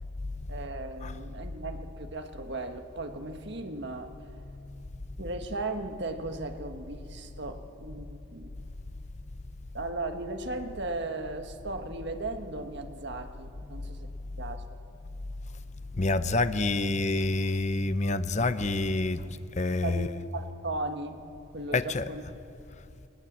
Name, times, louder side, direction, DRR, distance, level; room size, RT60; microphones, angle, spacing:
voice 1, 0.5-4.1 5.2-8.5 9.7-14.1 14.4-14.6 19.8-21.2 21.5-22.2, right 2 dB, 55° right, 6 dB, 1.4 m, -36 dB
voice 2, 15.9-20.1 21.7-22.1, left 2 dB, 30° left, 13 dB, 0.6 m, -28 dB
20.0 x 19.5 x 7.4 m, 2.9 s
head